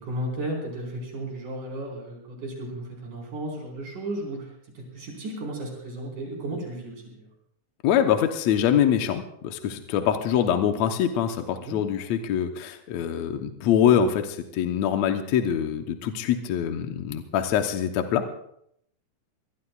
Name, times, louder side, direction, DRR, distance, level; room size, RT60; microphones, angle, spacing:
voice 1, 0.0-4.5 4.7-7.3 11.5-11.8, right 1 dB, 80° right, -1 dB, 6.3 m, -34 dB
voice 2, 7.8-18.4, left 9 dB, 70° left, 6 dB, 2.0 m, -24 dB
23.5 x 19.5 x 2.4 m, 0.72 s
omnidirectional pair, 3.6 m